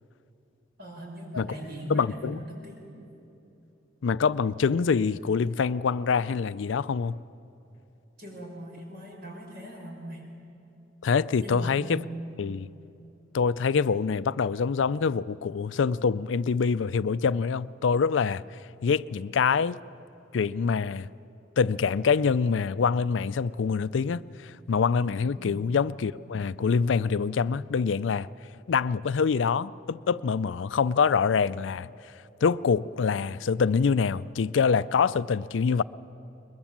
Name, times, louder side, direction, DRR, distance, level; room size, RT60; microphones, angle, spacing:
voice 1, 0.8-2.9 8.2-10.2 11.4-12.3 25.3-25.7, equal, 55° right, 5.0 m, -40 dB
voice 2, 1.9-2.4 4.0-7.2 11.0-12.0 12.4-12.7 13.3-18.4 18.8-19.8 20.3-21.1 21.6-28.3 28.7-31.9 32.4-35.8, left 5 dB, 80° left, 0.4 m, -25 dB
21.5 x 21.5 x 7.4 m
head